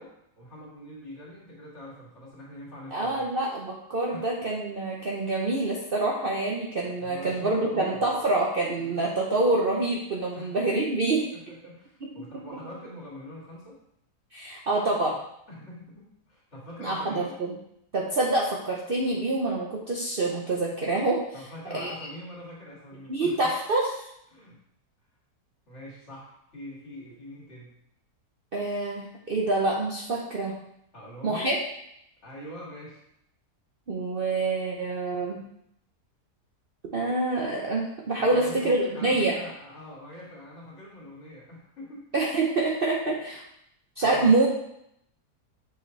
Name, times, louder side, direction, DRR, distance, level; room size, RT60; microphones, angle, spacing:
voice 1, 0.0-3.3 4.1-4.3 6.1-6.2 7.0-8.2 8.8-9.1 10.3-10.5 11.0-11.1 11.6-13.8 15.5-17.3 21.3-23.3 24.3-24.6 25.7-27.7 30.9-31.5 32.2-33.0 38.1-42.1 44.0-44.4, equal, 45° left, -5 dB, 2.7 m, -43 dB
voice 2, 2.9-11.2 12.0-12.1 14.3-15.1 16.8-17.5 17.9-21.2 21.7-21.9 23.1-24.0 28.5-30.5 31.2-31.6 33.9-35.4 36.9-39.4 42.1-43.4 44.0-44.5, right 2 dB, 45° right, -2 dB, 0.8 m, -26 dB
7.6 x 5.3 x 3.3 m, 0.77 s
omnidirectional pair, 1.7 m